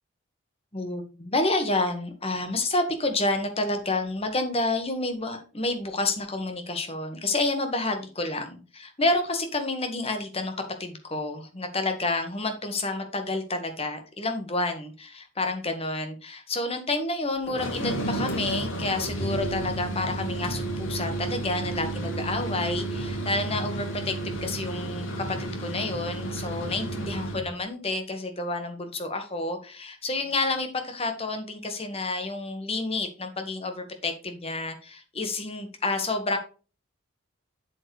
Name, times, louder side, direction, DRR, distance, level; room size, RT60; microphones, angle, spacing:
voice 1, 0.7-10.5 10.8-36.4, left 2 dB, 25° left, 6 dB, 1.6 m, -29 dB
sound 1, 17.5-27.5, right 2 dB, 70° left, 2.8 m, -32 dB
8.0 x 7.7 x 3.3 m, 0.35 s
head